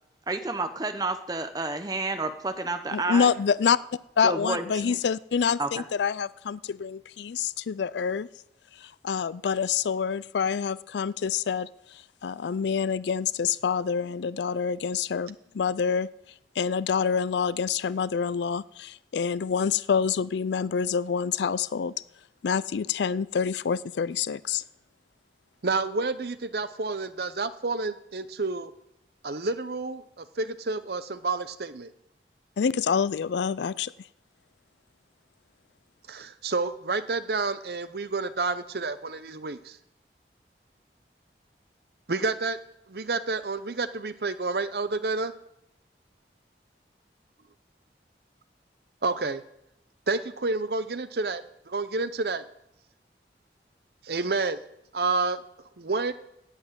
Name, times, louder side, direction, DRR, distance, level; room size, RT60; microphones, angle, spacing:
voice 1, 0.3-3.3 4.2-5.0 5.6-5.8, right 3 dB, 20° right, 9 dB, 0.9 m, -30 dB
voice 2, 2.9-3.8 4.2-8.3 8.8-11.7 12.2-16.1 16.6-21.9 22.4-24.6 32.6-33.9, left 6 dB, 85° left, 20 dB, 0.4 m, -27 dB
voice 3, 25.6-28.7 29.2-31.9 36.1-39.8 42.1-42.6 42.9-45.3 49.0-49.4 50.1-52.4 54.0-54.6 54.9-55.4 55.8-56.1, right 3 dB, 65° right, 13 dB, 0.8 m, -29 dB
11.0 x 8.3 x 8.9 m, 0.82 s
head